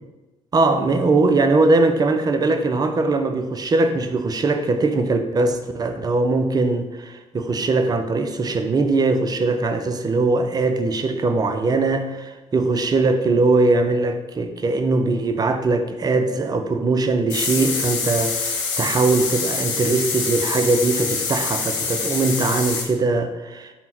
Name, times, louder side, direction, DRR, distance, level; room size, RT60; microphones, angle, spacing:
voice 1, 0.5-23.7, right 3 dB, 25° right, 7 dB, 0.4 m, -21 dB
sound 1, 17.3-22.9, left 5 dB, 70° left, 0.7 m, -25 dB
5.2 x 2.1 x 4.2 m, 1.1 s
figure-of-eight pair, 50°, 17 cm